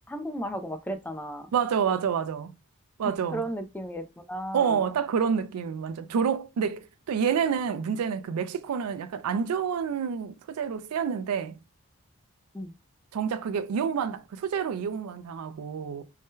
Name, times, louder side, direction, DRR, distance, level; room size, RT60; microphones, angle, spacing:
voice 1, 0.1-1.5 3.0-4.8 12.5-12.7, right 1 dB, 10° left, 0.3 m, -35 dB
voice 2, 1.5-2.5 3.0-3.4 4.5-11.6 13.1-16.0, right 7 dB, 85° right, 0.4 m, -28 dB
2.6 x 2.1 x 3.6 m
head